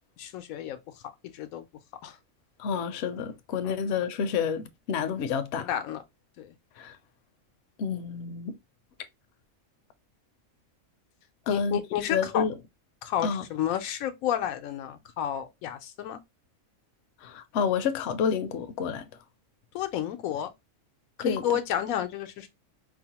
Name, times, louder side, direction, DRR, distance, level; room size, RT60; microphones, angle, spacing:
voice 1, 0.2-0.8 1.3-1.6 2.0-2.2 5.6-6.0 6.4-6.5 11.5-12.4 13.0-16.2 19.7-20.5 21.2-22.5, left 10 dB, 90° left, 1.0 m, -31 dB
voice 2, 2.6-5.7 6.8-6.9 7.8-8.5 11.5-11.8 12.1-12.5 13.2-13.4 17.2-19.0 21.2-21.4, left 6 dB, 65° left, 0.7 m, -29 dB
4.4 x 2.0 x 2.8 m
omnidirectional pair, 1.4 m